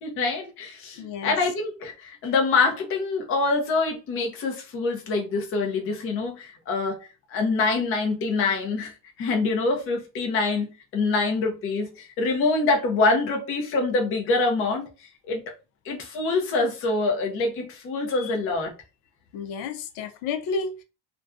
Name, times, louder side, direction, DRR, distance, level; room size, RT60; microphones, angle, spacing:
voice 1, 0.0-8.9 9.2-10.7 10.9-14.9 15.3-15.5 15.9-18.7, left 3 dB, 30° left, 0.5 m, -25 dB
voice 2, 1.0-1.4 18.1-18.3 19.3-20.8, left 4 dB, 75° left, 0.6 m, -31 dB
2.5 x 2.2 x 2.3 m
cardioid pair, 150°, 49 cm